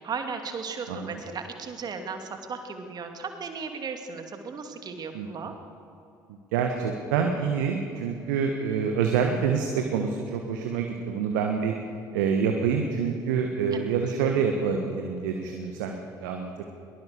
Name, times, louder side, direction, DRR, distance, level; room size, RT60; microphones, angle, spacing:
voice 1, 0.0-5.5 13.7-13.8, right 5 dB, 40° right, 5 dB, 2.6 m, -36 dB
voice 2, 6.5-11.7 12.1-16.6, right 6 dB, 70° right, 4 dB, 1.6 m, -27 dB
22.0 x 21.0 x 6.9 m, 2.7 s
figure-of-eight pair, 55°, 10 cm